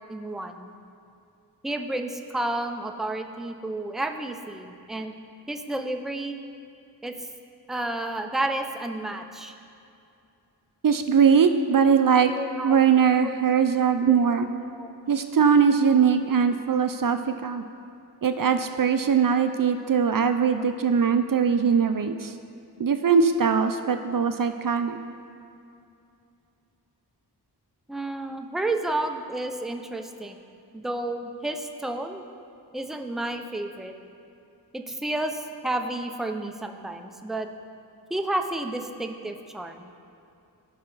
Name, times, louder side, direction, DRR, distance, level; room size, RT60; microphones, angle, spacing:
voice 1, 0.1-0.7 1.6-5.1 5.5-6.4 7.0-7.1 7.7-9.5 12.3-12.8 13.2-14.4 14.7-14.9 19.8-19.9 20.5-20.6 27.9-30.4 30.7-32.2 32.7-34.0 34.7-37.5 38.1-39.9, right 2 dB, ahead, 5 dB, 0.6 m, -31 dB
voice 2, 10.8-12.3 12.6-14.5 15.1-17.6 18.2-22.3 22.8-25.0, right 6 dB, 55° right, 8 dB, 0.5 m, -21 dB
16.0 x 5.5 x 4.0 m, 2.7 s
wide cardioid pair, 60°, 40 cm